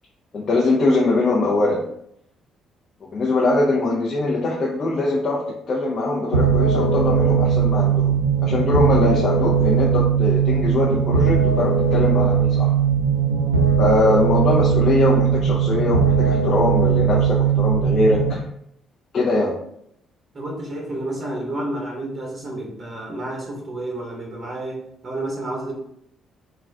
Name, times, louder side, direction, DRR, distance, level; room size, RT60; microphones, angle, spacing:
voice 1, 0.3-1.8 3.0-8.1 8.4-12.7 13.8-18.4 19.1-19.5, left 2 dB, 45° left, -5 dB, 0.6 m, -22 dB
sound 1, 6.3-18.3, right 7 dB, 90° right, 0.3 m, -19 dB
voice 2, 20.3-25.7, right 1 dB, 40° right, -2 dB, 0.8 m, -30 dB
2.3 x 2.3 x 3.4 m, 0.73 s
hypercardioid pair, 45°, 0 cm